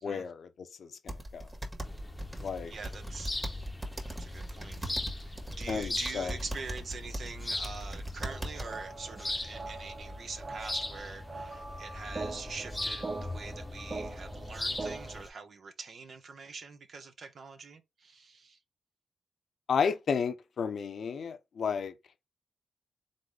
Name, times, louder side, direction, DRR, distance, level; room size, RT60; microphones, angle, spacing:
voice 1, 0.0-1.5 2.4-2.7 5.7-6.3 19.7-21.9, left 6 dB, 70° left, 0.7 m, -32 dB
sound 1, 1.1-8.8, right 1 dB, 20° right, 1.7 m, -40 dB
sound 2, 1.8-15.3, left 2 dB, 20° left, 0.8 m, -40 dB
voice 2, 2.4-3.7 4.0-4.8 5.2-18.6, right 4 dB, 65° right, 1.0 m, -44 dB
sound 3, 8.2-15.2, right 3 dB, 40° right, 0.7 m, -42 dB
4.0 x 3.8 x 3.3 m
cardioid pair, 65°, 0 cm